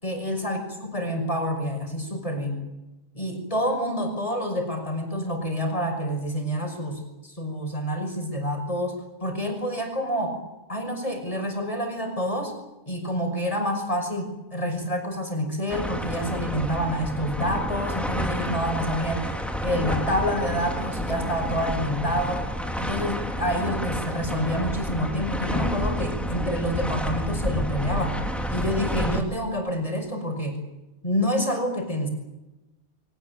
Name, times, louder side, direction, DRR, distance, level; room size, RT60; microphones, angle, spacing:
voice 1, 0.0-2.6 3.1-10.4 10.7-12.5 12.9-19.4 19.6-28.2 28.5-30.6 31.0-32.1, equal, 30° left, 4 dB, 5.8 m, -28 dB
sound 1, 15.7-29.2, equal, ahead, 2.5 m, -30 dB
23.5 x 19.0 x 9.4 m, 1.0 s
omnidirectional pair, 1.2 m